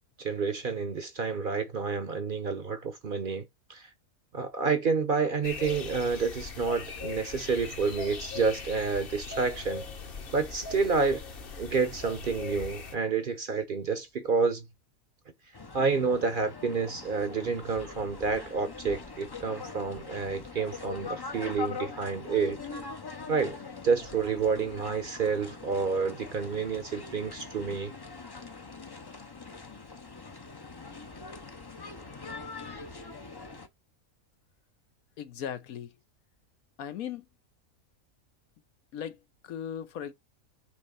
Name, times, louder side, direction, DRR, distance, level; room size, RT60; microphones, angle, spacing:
voice 1, 0.2-3.4 3.7-3.9 4.3-9.8 10.3-11.2 11.6-14.7 15.7-22.6 23.3-23.6 23.8-27.9, right 5 dB, 45° right, 0.8 m, -29 dB
sound 1, 5.4-12.9, left 4 dB, 45° left, 1.1 m, -40 dB
sound 2, 15.5-33.7, left 4 dB, 30° left, 0.4 m, -42 dB
voice 2, 35.2-35.9 36.8-37.3 38.9-40.1, left 9 dB, 85° left, 1.3 m, -38 dB
6.4 x 3.2 x 5.4 m
omnidirectional pair, 1.5 m